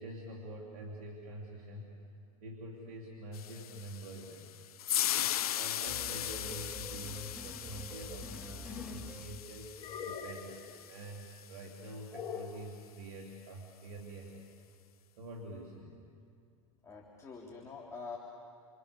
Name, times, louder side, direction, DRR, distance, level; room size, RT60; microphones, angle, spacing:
voice 1, 0.0-2.0 2.4-4.5 5.1-9.7 10.0-14.4 15.2-16.0, right 1 dB, 75° right, -1 dB, 3.4 m, -46 dB
sound 1, 3.3-11.6, left 11 dB, 85° left, 0.6 m, -38 dB
sound 2, 5.9-10.2, equal, 5° right, 1.5 m, -48 dB
sound 3, 8.2-9.1 9.8-10.6 12.1-12.6, left 7 dB, 30° left, 2.9 m, -43 dB
voice 2, 16.8-18.2, left 4 dB, 15° left, -3 dB, 3.4 m, -45 dB
29.5 x 27.0 x 7.0 m, 2.3 s
hypercardioid pair, 110°, 18 cm